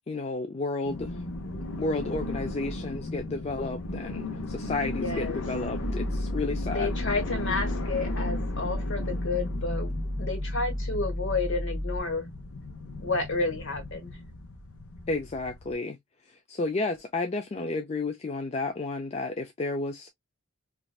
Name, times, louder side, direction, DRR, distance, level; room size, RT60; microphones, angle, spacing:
voice 1, 0.1-1.2 1.8-6.9 15.1-16.0 16.3-20.1, left 3 dB, 30° left, 0.3 m, -32 dB
sound 1, 0.8-15.7, left 2 dB, 85° left, 0.7 m, -36 dB
voice 2, 4.9-5.4 6.7-9.9 10.2-12.3 13.0-14.2, left 3 dB, 60° left, 1.3 m, -31 dB
sound 2, 5.8-12.0, left 1 dB, 30° right, 1.5 m, -32 dB
3.2 x 2.5 x 2.3 m
head